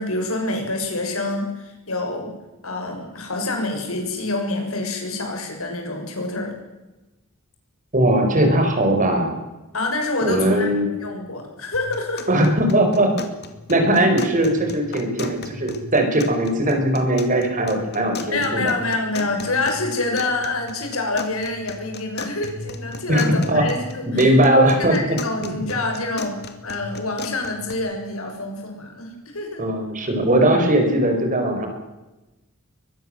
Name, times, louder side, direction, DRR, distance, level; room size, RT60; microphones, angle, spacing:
voice 1, 0.0-2.3 2.6-6.5 9.7-12.3 18.3-24.2 24.9-29.6, left 2 dB, 90° left, 3 dB, 6.8 m, -27 dB
voice 2, 7.9-9.4 10.2-10.9 12.3-13.1 13.7-18.7 23.1-23.6 24.1-25.7 29.6-31.7, right 1 dB, 40° right, 5 dB, 5.0 m, -19 dB
sound 1, 11.7-27.7, left 3 dB, 50° left, 2.5 m, -37 dB
23.0 x 21.5 x 7.9 m, 1.1 s
head